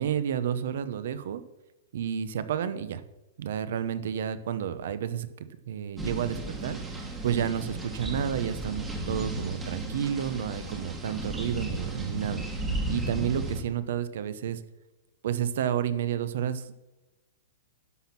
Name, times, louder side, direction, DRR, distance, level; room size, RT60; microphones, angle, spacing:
voice 1, 0.0-1.4 1.9-3.0 3.4-14.6 15.2-16.7, right 9 dB, 60° right, 13 dB, 0.8 m, -31 dB
sound 1, 6.0-13.6, right 2 dB, 10° right, 1.3 m, -34 dB
11.5 x 6.1 x 5.9 m, 1.0 s
supercardioid pair, 170°, 0 cm